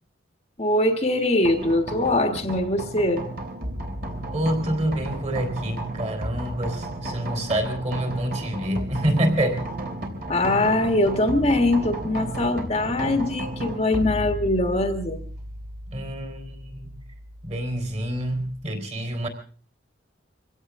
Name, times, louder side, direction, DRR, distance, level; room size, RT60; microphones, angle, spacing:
voice 1, 0.6-3.3 10.3-15.2, left 1 dB, 35° left, 5 dB, 1.6 m, -22 dB
sound 1, 1.4-18.7, right 1 dB, 50° right, 3.3 m, -34 dB
voice 2, 4.3-9.7 15.9-17.0 17.4-19.3, right 1 dB, 35° right, 6 dB, 3.8 m, -27 dB
24.0 x 16.5 x 3.6 m, 0.43 s
head